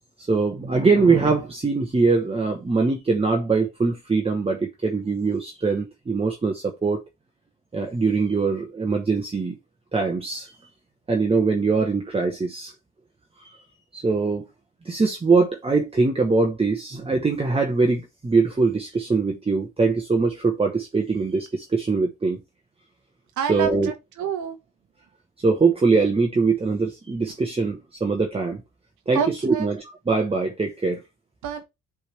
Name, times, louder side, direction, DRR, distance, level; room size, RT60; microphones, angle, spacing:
voice 1, 0.2-7.0 7.7-9.6 9.9-10.5 11.1-12.7 13.4-13.5 13.9-14.4 14.8-22.4 23.5-23.9 25.4-28.6 29.1-31.0, right 4 dB, 20° right, 1.1 m, -22 dB
voice 2, 23.4-24.6 29.1-29.7 31.4-31.6, right 7 dB, 75° right, 1.1 m, -27 dB
9.9 x 3.6 x 3.3 m
cardioid pair, 90°, 30 cm